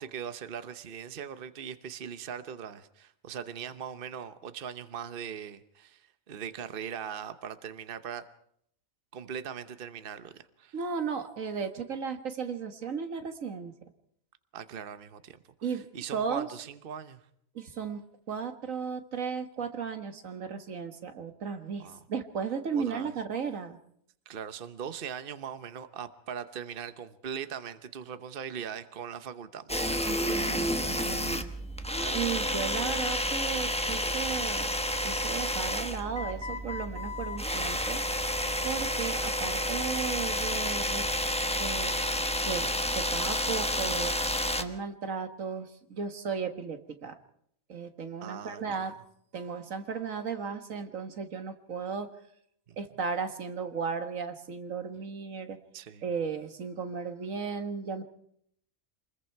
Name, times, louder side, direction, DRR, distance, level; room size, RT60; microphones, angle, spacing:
voice 1, 0.0-8.2 9.1-10.8 14.5-15.4 15.7-17.2 21.8-22.0 22.7-23.1 24.3-30.2 31.9-32.6 48.2-48.9 52.7-52.8 55.7-56.1, right 8 dB, 45° right, 1.1 m, -40 dB
voice 2, 10.7-13.7 15.6-15.9 16.1-16.5 17.6-18.0 18.3-23.8 30.0-31.5 32.1-34.7 35.0-38.0 38.6-41.0 41.5-41.9 42.4-44.2 44.6-47.1 47.7-48.9 49.3-52.1 52.8-55.6 56.0-58.0, right 6 dB, 85° right, 1.8 m, -35 dB
sound 1, 29.7-44.6, left 1 dB, 5° left, 0.9 m, -30 dB
27.0 x 21.0 x 4.6 m
omnidirectional pair, 1.3 m